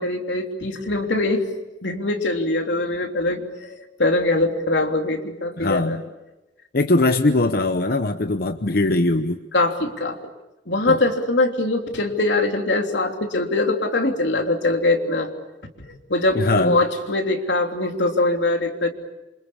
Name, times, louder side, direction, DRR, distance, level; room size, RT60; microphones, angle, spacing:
voice 1, 0.0-1.4 1.8-6.0 9.5-10.2 10.7-15.3 15.8-18.9, left 2 dB, 85° left, 3 dB, 3.3 m, -22 dB
voice 2, 5.6-6.0 6.7-9.4 10.9-11.0 16.3-16.8, left 2 dB, 55° left, 8 dB, 0.9 m, -20 dB
27.5 x 26.5 x 7.2 m, 1.0 s
head